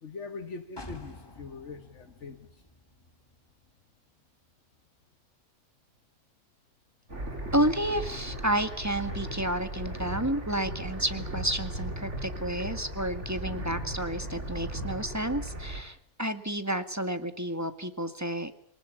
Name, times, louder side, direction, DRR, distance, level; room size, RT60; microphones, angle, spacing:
voice 1, 0.0-2.7, left 4 dB, 70° left, 7 dB, 1.7 m, -42 dB
sound 1, 0.8-4.5 4.9-5.0, left 1 dB, 20° left, 2.5 m, -49 dB
sound 2, 7.1-15.8, right 1 dB, 70° right, 4.7 m, -37 dB
voice 2, 7.5-18.5, right 1 dB, 15° right, 10 dB, 1.8 m, -30 dB
24.0 x 19.5 x 8.4 m, 0.63 s
omnidirectional pair, 1.3 m